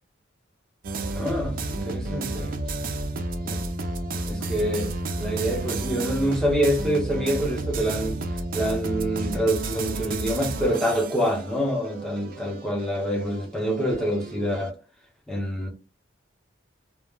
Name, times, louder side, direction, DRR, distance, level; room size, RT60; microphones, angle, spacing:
sound 1, 0.8-14.7, right 2 dB, 45° right, 0.3 m, -31 dB
voice 1, 1.1-2.5 3.4-3.6 4.2-8.2 8.5-14.7 15.3-15.7, equal, ahead, 0.6 m, -26 dB
2.1 x 2.0 x 3.3 m
head